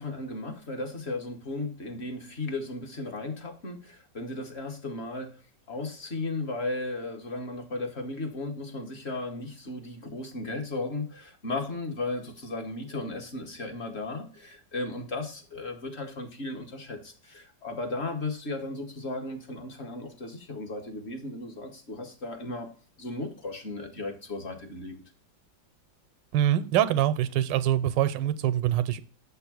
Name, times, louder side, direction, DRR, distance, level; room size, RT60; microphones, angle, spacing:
voice 1, 0.0-5.3 5.7-22.7 23.0-25.0, left 2 dB, 45° left, 4 dB, 1.0 m, -35 dB
voice 2, 26.3-29.0, right 11 dB, 90° right, 13 dB, 1.3 m, -24 dB
7.2 x 3.5 x 6.0 m, 0.42 s
omnidirectional pair, 1.9 m